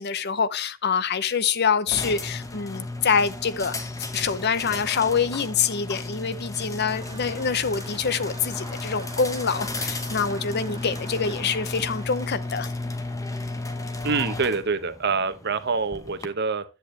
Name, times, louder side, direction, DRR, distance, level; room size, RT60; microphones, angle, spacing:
voice 1, 0.0-3.7 4.1-12.7, left 6 dB, 50° left, 0.7 m, -25 dB
sound 1, 1.9-16.3, left 2 dB, 15° left, 1.1 m, -34 dB
sound 2, 6.8-12.8, right 2 dB, 25° right, 1.6 m, -46 dB
voice 2, 14.0-16.6, right 4 dB, 50° right, 1.0 m, -26 dB
10.0 x 8.3 x 3.2 m
head